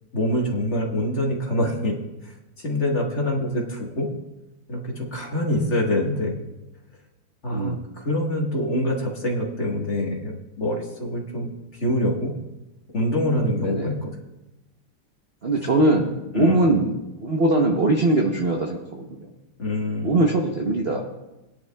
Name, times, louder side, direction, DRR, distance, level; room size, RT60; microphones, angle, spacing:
voice 1, 0.1-2.0 2.2-4.1 4.7-6.4 7.4-12.3 12.9-14.1 16.3-16.6 19.6-20.2, left 1 dB, 35° left, -1 dB, 1.5 m, -25 dB
voice 2, 13.6-13.9 15.4-19.3 20.0-21.0, right 2 dB, 70° right, 0 dB, 0.5 m, -22 dB
20.5 x 10.0 x 2.3 m, 0.98 s
omnidirectional pair, 2.4 m